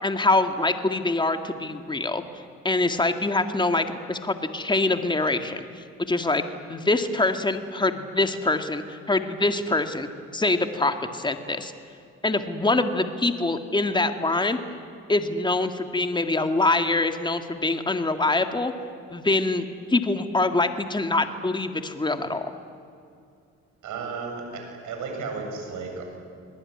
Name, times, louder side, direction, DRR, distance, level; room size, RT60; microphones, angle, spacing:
voice 1, 0.0-2.2 2.6-5.7 6.1-6.4 6.7-11.7 12.2-14.6 15.1-18.7 19.1-22.5, left 2 dB, 15° left, 7 dB, 2.0 m, -24 dB
voice 2, 23.8-26.0, right 4 dB, 80° right, 3 dB, 7.4 m, -34 dB
27.5 x 20.5 x 9.9 m, 2.4 s
cardioid pair, 90°, 30 cm